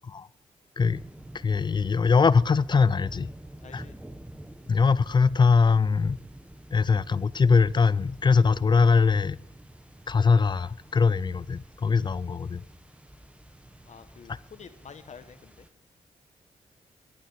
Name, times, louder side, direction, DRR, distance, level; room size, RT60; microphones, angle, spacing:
sound 1, 0.8-15.7, right 1 dB, 10° right, 0.9 m, -48 dB
voice 1, 1.4-3.3 3.7-3.8 4.7-6.2 6.7-9.4 10.1-12.6, left 5 dB, 35° left, 0.4 m, -22 dB
voice 2, 3.6-4.0 13.9-15.7, left 6 dB, 60° left, 1.4 m, -48 dB
12.0 x 9.0 x 7.2 m
cardioid pair, 70°, 13 cm